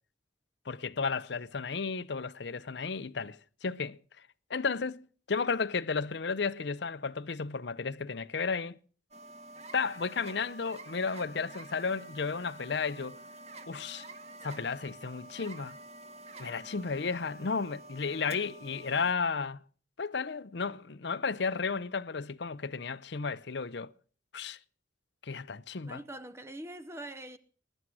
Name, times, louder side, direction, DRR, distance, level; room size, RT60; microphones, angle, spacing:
voice 1, 0.7-4.0 4.5-8.8 9.7-13.2 13.7-14.1 14.4-15.8 16.4-19.6 20.0-23.9 24.3-24.6 25.2-26.0, left 5 dB, 65° left, 0.7 m, -33 dB
sound 1, 9.1-19.1, right 2 dB, 35° right, 1.6 m, -49 dB
voice 2, 25.8-27.4, right 1 dB, 15° right, 0.7 m, -43 dB
20.5 x 11.0 x 6.3 m
head